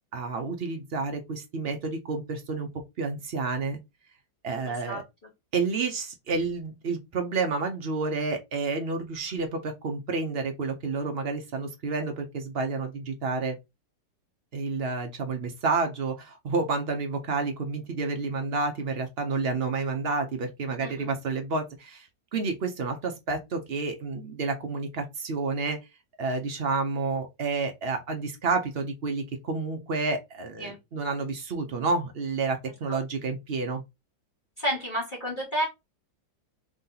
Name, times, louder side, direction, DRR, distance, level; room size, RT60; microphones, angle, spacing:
voice 1, 0.1-2.7 3.0-3.8 4.4-5.0 5.5-13.6 14.5-25.8 26.2-33.8, right 4 dB, 70° right, 0.5 m, -30 dB
voice 2, 4.6-5.0 20.8-21.1 30.6-30.8 32.9-33.0 34.6-35.7, equal, 30° left, 1.3 m, -31 dB
3.6 x 2.8 x 3.8 m
omnidirectional pair, 2.0 m